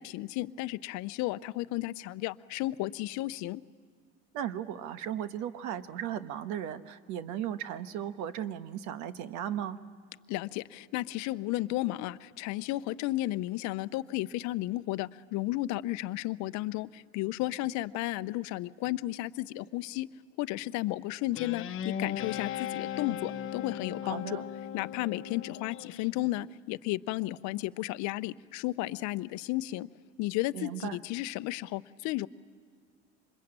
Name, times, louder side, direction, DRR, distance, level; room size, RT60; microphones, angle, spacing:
voice 1, 0.0-3.6 10.3-20.1 20.4-24.4 24.7-29.9 30.2-32.3, left 17 dB, 60° left, 13 dB, 0.7 m, -33 dB
voice 2, 4.3-9.8 24.0-24.4 30.5-31.0, right 10 dB, 65° right, 11 dB, 1.2 m, -36 dB
Guitar, 21.3-26.1, left 9 dB, 40° left, 1.1 m, -37 dB
26.0 x 21.5 x 8.8 m, 2.1 s
supercardioid pair, 115°, 33 cm